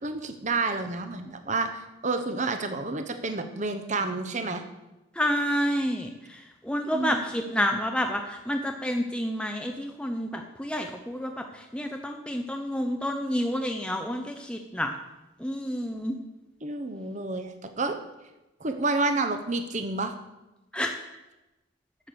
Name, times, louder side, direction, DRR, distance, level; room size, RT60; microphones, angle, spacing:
voice 1, 0.0-4.7 6.9-7.5 16.6-18.0 18.6-20.1, right 3 dB, 35° right, 7 dB, 0.9 m, -30 dB
voice 2, 5.2-15.0 15.4-16.2 20.7-21.0, equal, 5° left, 3 dB, 0.6 m, -29 dB
8.6 x 7.9 x 6.8 m, 1.0 s
head